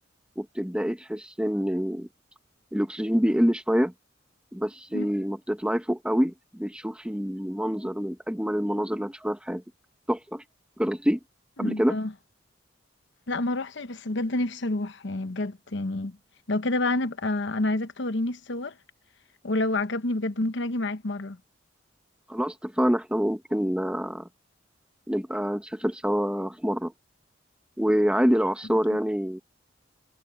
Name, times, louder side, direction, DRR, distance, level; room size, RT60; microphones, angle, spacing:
voice 1, 0.4-2.1 2.7-3.9 4.5-9.6 10.1-10.4 10.8-11.2 11.6-11.9 22.3-24.3 25.1-26.9 27.8-29.4, equal, 5° right, 1.3 m, -26 dB
voice 2, 11.6-12.1 13.3-16.2 16.5-18.7 19.4-21.4, left 2 dB, 65° left, 1.1 m, -28 dB
head